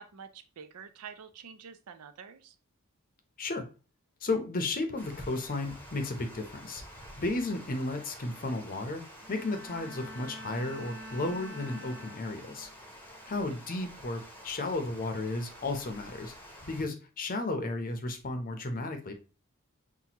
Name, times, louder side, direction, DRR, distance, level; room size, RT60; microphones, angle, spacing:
voice 1, 0.0-2.6, right 6 dB, 85° right, 9 dB, 0.5 m, -47 dB
voice 2, 4.2-6.8 7.2-9.0 9.3-12.7 13.3-16.3 16.7-19.1, left 2 dB, 40° left, 6 dB, 0.7 m, -33 dB
Water, 5.0-16.8, equal, 10° left, 0.8 m, -49 dB
Bowed string instrument, 9.2-12.8 13.2-13.6, equal, 55° right, 1.3 m, -46 dB
5.9 x 2.3 x 2.9 m, 0.33 s
head